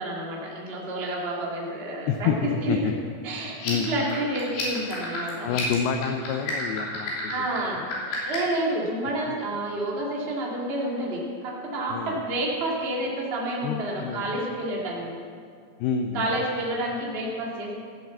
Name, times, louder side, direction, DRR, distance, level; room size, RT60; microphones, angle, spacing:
voice 1, 0.0-2.3 2.6-2.9 3.2-3.6 3.8-5.5 7.3-7.9 8.2-15.2 16.1-17.8, right 1 dB, 30° right, -4 dB, 1.1 m, -29 dB
voice 2, 2.1-2.9 3.6-3.9 5.4-7.9 9.3-9.4 11.9-12.2 13.6-14.3 15.8-16.4, left 7 dB, 90° left, 5 dB, 2.2 m, -28 dB
sound 1, 3.5-8.6, left 3 dB, 70° left, 5.0 m, -32 dB
15.5 x 7.7 x 7.4 m, 2.2 s
omnidirectional pair, 5.3 m